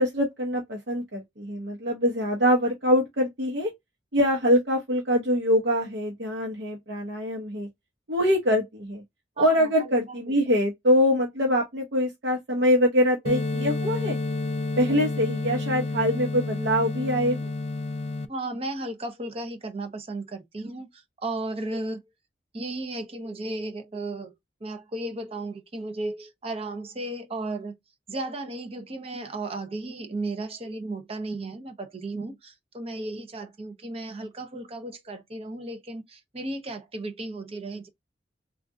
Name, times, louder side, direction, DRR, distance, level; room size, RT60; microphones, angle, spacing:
voice 1, 0.0-3.7 4.1-7.7 8.1-9.0 9.4-14.2 14.8-17.5, equal, 75° right, 0.9 m, -24 dB
voice 2, 9.4-9.9 10.3-10.4 14.9-15.0 18.3-22.0 22.5-24.3 24.6-27.8 28.1-37.9, right 2 dB, 35° right, 0.7 m, -34 dB
sound 1, 13.3-18.3, left 2 dB, 35° left, 0.4 m, -30 dB
3.6 x 2.4 x 2.5 m
head